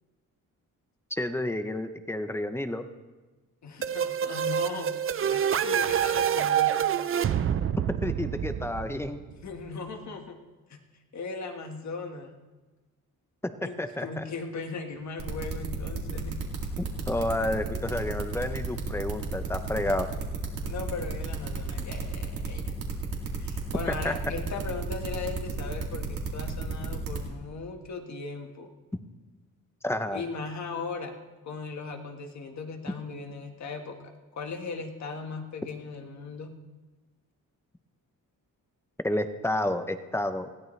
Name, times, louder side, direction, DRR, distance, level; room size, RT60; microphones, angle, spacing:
voice 1, 1.1-2.8 8.0-9.2 13.4-13.5 13.8-14.3 16.8-20.1 23.9-24.1 29.8-30.2 39.0-40.5, left 1 dB, 10° left, 9 dB, 0.6 m, -30 dB
voice 2, 3.6-5.0 5.3-6.8 9.4-10.4 10.7-10.8 11.1-12.4 13.6-16.4 19.8-20.0 20.6-22.7 23.4-28.7 30.1-31.1 31.4-36.5, left 4 dB, 55° left, 3 dB, 1.5 m, -38 dB
sound 1, 3.8-9.5, right 9 dB, 40° right, 0.4 m, -27 dB
sound 2, 15.2-27.2, right 4 dB, 85° right, 2.5 m, -33 dB
19.5 x 16.0 x 3.2 m, 1.2 s
wide cardioid pair, 180°, 33 cm